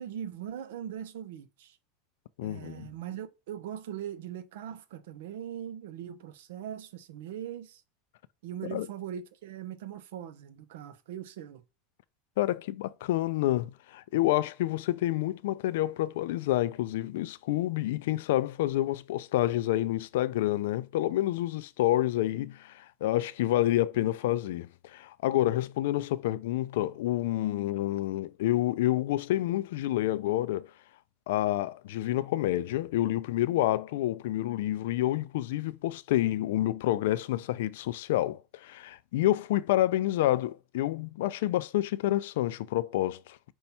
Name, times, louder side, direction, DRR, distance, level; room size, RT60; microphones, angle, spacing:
voice 1, 0.0-1.8 2.4-7.8 8.4-11.6, right 10 dB, 80° right, 0.6 m, -40 dB
voice 2, 2.4-2.9 8.7-8.9 12.4-30.7 31.3-43.4, left 14 dB, 80° left, 0.3 m, -28 dB
5.3 x 2.3 x 4.2 m
supercardioid pair, 135°, 0 cm